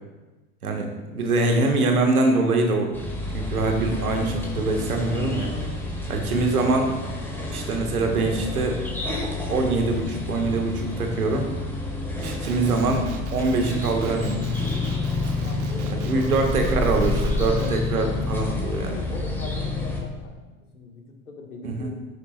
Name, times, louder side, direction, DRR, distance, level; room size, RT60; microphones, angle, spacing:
voice 1, 0.6-2.9 3.3-5.5 6.1-7.0 7.5-8.8 9.5-11.5 12.2-13.1 13.3-14.4 15.9-19.0 21.6-21.9, right 3 dB, 80° right, 2 dB, 1.4 m, -24 dB
sound 1, 2.9-20.0, left 3 dB, 5° left, 1.7 m, -29 dB
Male speech man speaking, 12.2-17.8, right 7 dB, 55° right, 0.9 m, -40 dB
sound 2, 13.9-15.8 16.1-20.3, left 1 dB, 10° right, 0.8 m, -32 dB
voice 2, 15.4-17.7 18.9-20.5 20.7-21.9, left 3 dB, 85° left, 2 dB, 1.4 m, -40 dB
10.0 x 6.6 x 2.2 m, 1.2 s
figure-of-eight pair, 85°, 43 cm